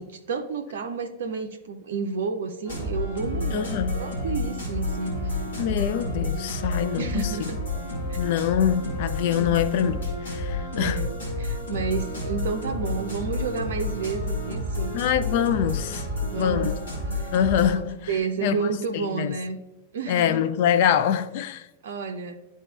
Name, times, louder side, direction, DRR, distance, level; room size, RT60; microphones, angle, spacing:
voice 1, 0.0-5.4 7.0-7.6 8.1-8.2 9.3-9.6 10.7-14.9 16.2-16.7 17.1-17.3 18.1-19.6 19.9-20.5 21.8-22.4, right 5 dB, 60° right, 0.5 m, -31 dB
sound 1, 2.6-17.7, left 1 dB, 65° left, 2.2 m, -30 dB
voice 2, 3.5-4.0 5.6-7.5 8.2-11.0 14.9-16.1 16.4-16.8 17.3-19.4 20.1-21.7, left 9 dB, 50° left, 0.4 m, -25 dB
12.0 x 4.1 x 2.4 m
figure-of-eight pair, 90°, 0 cm